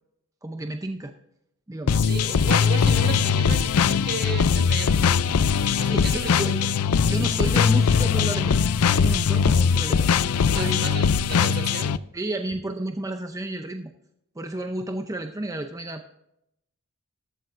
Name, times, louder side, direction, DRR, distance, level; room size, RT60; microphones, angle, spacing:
voice 1, 0.4-1.1 1.7-2.0 5.6-6.5 7.0-8.6 8.8-10.1 10.5-10.9 12.1-13.9 14.4-16.2, right 1 dB, 15° right, 6 dB, 0.6 m, -32 dB
sound 1, 1.9-12.0, left 6 dB, 85° left, 0.5 m, -21 dB
voice 2, 2.0-6.7 10.5-12.0, right 5 dB, 45° right, 5 dB, 1.5 m, -35 dB
14.0 x 12.5 x 2.5 m, 0.80 s
head